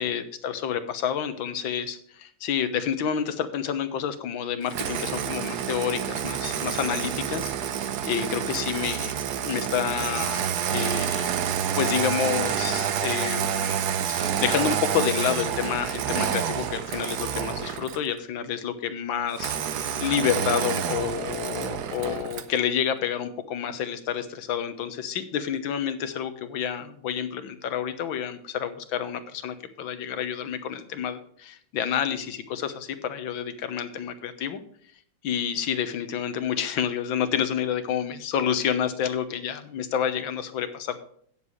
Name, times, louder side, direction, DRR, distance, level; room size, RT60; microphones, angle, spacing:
voice 1, 0.0-7.5 8.0-11.3 11.7-34.6 35.2-41.0, left 8 dB, 80° left, 10 dB, 1.8 m, -29 dB
Engine starting, 4.7-18.1 19.4-22.6, right 9 dB, 65° right, 1.2 m, -28 dB
16.5 x 7.3 x 3.2 m, 0.63 s
omnidirectional pair, 2.1 m